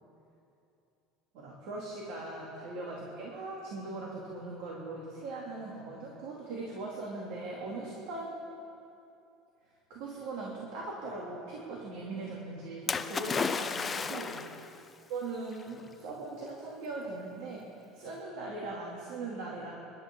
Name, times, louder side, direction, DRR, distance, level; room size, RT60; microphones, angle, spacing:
voice 1, 1.3-8.4 9.9-14.6 15.1-19.7, right 2 dB, 65° right, -3 dB, 2.8 m, -40 dB
Splash splatter, 12.9-14.7 15.6-15.7, left 5 dB, 20° left, 0.5 m, -32 dB
28.0 x 12.5 x 3.9 m, 2.7 s
cardioid pair, 155°, 0 cm